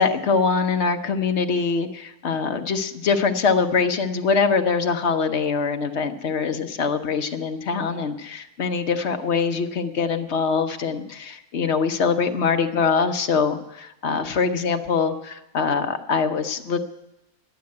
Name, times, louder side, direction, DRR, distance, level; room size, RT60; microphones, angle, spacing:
voice 1, 0.0-16.8, left 5 dB, 50° left, 6 dB, 1.0 m, -23 dB
11.5 x 7.6 x 9.4 m, 0.92 s
omnidirectional pair, 1.6 m